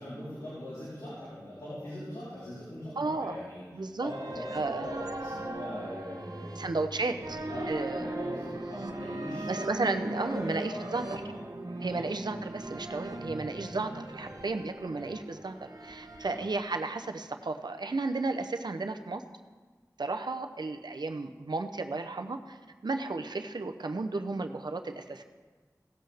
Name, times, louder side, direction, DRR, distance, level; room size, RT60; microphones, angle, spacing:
voice 1, 0.0-3.6 4.0-6.7 7.1-9.7 10.1-11.4 11.9-12.0 13.6-13.7 14.2-14.3 14.9-15.0 16.2-16.4, left 1 dB, 85° left, -11 dB, 3.9 m, -41 dB
voice 2, 3.0-3.4 3.7-4.1 4.5-4.9 6.6-7.4 7.7-8.1 9.5-11.2 11.8-19.2 20.0-22.6 22.8-25.2, right 3 dB, 85° right, 6 dB, 0.7 m, -33 dB
sound 1, 4.1-16.4, right 1 dB, 65° right, 1.1 m, -39 dB
17.5 x 7.6 x 3.5 m, 1.4 s
wide cardioid pair, 50°, 7 cm